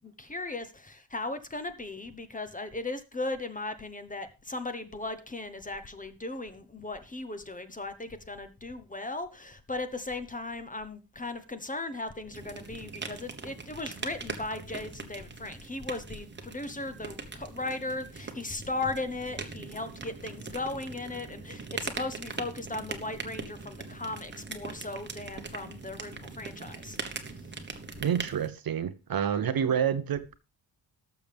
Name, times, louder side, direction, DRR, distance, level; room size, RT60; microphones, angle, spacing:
voice 1, 0.0-27.0, left 2 dB, 15° left, 0.9 m, -37 dB
sound 1, 12.3-28.5, right 4 dB, 25° right, 1.1 m, -41 dB
voice 2, 28.0-30.3, right 8 dB, 50° right, 0.8 m, -28 dB
18.0 x 6.9 x 3.5 m
wide cardioid pair, 145°, 45 cm